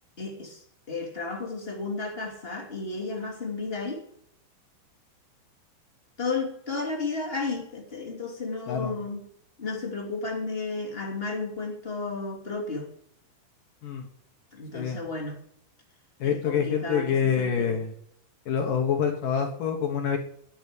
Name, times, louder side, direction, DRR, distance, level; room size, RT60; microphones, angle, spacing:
voice 1, 0.2-4.0 6.2-9.3 9.6-12.9 14.5-15.4 16.2-17.8, left 3 dB, 15° left, 0 dB, 2.1 m, -33 dB
voice 2, 16.2-17.9 18.5-20.2, left 7 dB, 60° left, 3 dB, 2.4 m, -26 dB
11.5 x 9.3 x 8.4 m, 0.68 s
omnidirectional pair, 5.5 m